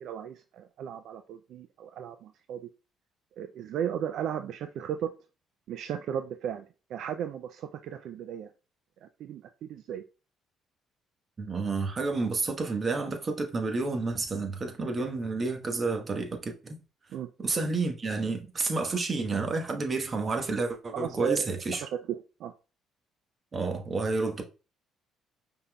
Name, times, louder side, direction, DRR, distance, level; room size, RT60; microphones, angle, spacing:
voice 1, 0.0-2.6 3.4-5.1 5.7-8.5 9.0-9.4 9.7-10.0 17.1-17.3 20.9-21.5 21.8-22.5, right 9 dB, 70° right, 0.3 m, -35 dB
voice 2, 11.4-16.8 17.4-21.8 23.5-24.4, right 3 dB, 40° right, 1.2 m, -30 dB
5.5 x 3.7 x 2.2 m
supercardioid pair, 65°, 0 cm